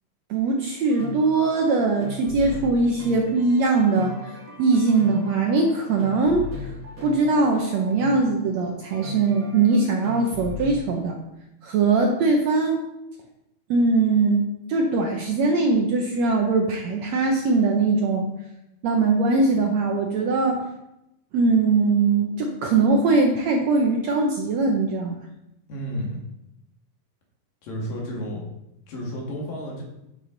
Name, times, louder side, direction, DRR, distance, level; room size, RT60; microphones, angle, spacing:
voice 1, 0.3-6.7 7.0-11.2 11.6-12.8 13.7-18.3 18.8-20.7 21.3-25.2, right 3 dB, 70° right, 1 dB, 1.7 m, -21 dB
sound 1, 0.7-10.8, left 3 dB, 35° right, 1.9 m, -38 dB
voice 2, 25.7-26.2 27.6-28.5 28.9-29.8, equal, 75° left, -2 dB, 3.7 m, -31 dB
9.8 x 7.4 x 3.9 m, 0.87 s
omnidirectional pair, 4.0 m